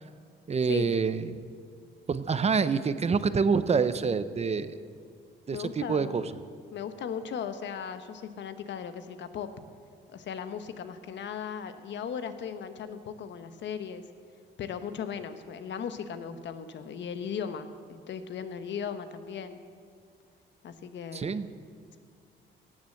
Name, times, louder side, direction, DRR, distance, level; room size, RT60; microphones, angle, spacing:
voice 1, 0.5-1.4 2.1-4.8 5.5-6.3 21.1-21.5, right 5 dB, 30° right, 13 dB, 0.7 m, -27 dB
voice 2, 5.5-6.3 6.7-9.5 10.1-14.0 14.6-19.6 20.6-21.4, left 7 dB, 65° left, 10 dB, 1.0 m, -37 dB
17.0 x 7.4 x 7.7 m, 2.2 s
cardioid pair, 90°, 20 cm